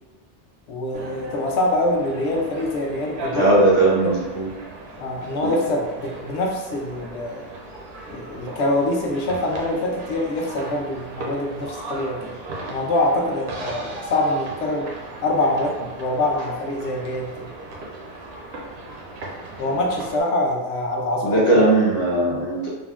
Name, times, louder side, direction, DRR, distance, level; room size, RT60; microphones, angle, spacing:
voice 1, 0.7-3.5 4.0-4.2 5.0-7.4 8.1-12.3 12.7-14.9 15.2-17.5 19.6-21.6, left 1 dB, 70° left, 0 dB, 0.8 m, -24 dB
sound 1, 0.9-20.2, right 1 dB, 65° right, 0.8 m, -36 dB
voice 2, 3.3-4.5 21.2-22.7, right 2 dB, 40° left, -7 dB, 0.5 m, -18 dB
3.5 x 2.1 x 2.2 m, 1.2 s
omnidirectional pair, 1.2 m